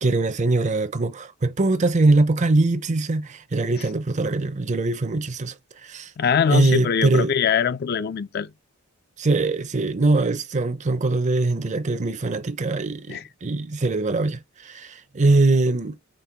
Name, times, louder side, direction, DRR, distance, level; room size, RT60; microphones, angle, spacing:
voice 1, 0.0-5.5 5.8-6.1 6.5-7.4 9.2-16.0, right 2 dB, 35° right, 0.5 m, -22 dB
voice 2, 6.2-8.5 13.1-13.2, left 7 dB, 50° left, 0.4 m, -22 dB
5.3 x 2.1 x 4.4 m
head